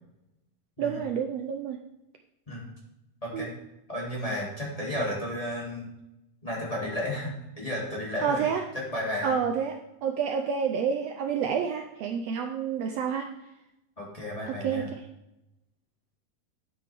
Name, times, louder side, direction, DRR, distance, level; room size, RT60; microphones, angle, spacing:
voice 1, 0.8-1.8 3.3-3.5 8.2-8.6 9.2-13.3 14.5-15.0, right 7 dB, 85° right, 4 dB, 1.4 m, -29 dB
voice 2, 3.2-3.5 3.9-5.9 6.4-8.5 8.7-9.4 14.0-14.9, left 1 dB, 10° left, -6 dB, 2.3 m, -33 dB
12.0 x 8.8 x 3.5 m, 0.90 s
omnidirectional pair, 3.8 m